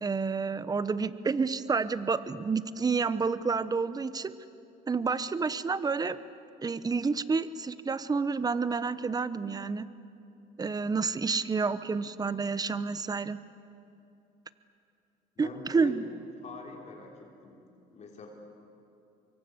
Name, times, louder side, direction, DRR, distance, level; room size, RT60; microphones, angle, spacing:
voice 1, 0.0-4.4 4.9-6.2 6.6-9.9 10.6-13.4 15.4-16.0, right 4 dB, 20° right, 15 dB, 0.9 m, -29 dB
voice 2, 15.4-15.9 16.4-17.6 17.9-18.3, left 5 dB, 45° left, 0 dB, 3.8 m, -44 dB
25.5 x 23.5 x 8.1 m, 2.7 s
cardioid pair, 110°, 17 cm